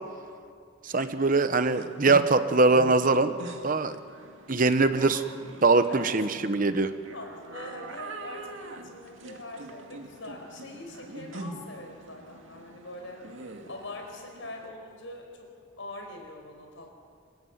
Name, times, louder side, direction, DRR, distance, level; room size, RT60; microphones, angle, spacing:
voice 1, 0.8-3.4 3.6-4.0 4.5-5.2 5.6-6.9, right 3 dB, 40° right, 10 dB, 1.0 m, -22 dB
sound 1, 1.0-14.7, right 2 dB, 75° right, 2.2 m, -44 dB
voice 2, 5.0-5.3 5.9-6.2 7.1-13.2 13.7-15.5 15.8-16.9, left 2 dB, 70° left, 3 dB, 5.1 m, -43 dB
26.0 x 15.0 x 9.6 m, 2.2 s
head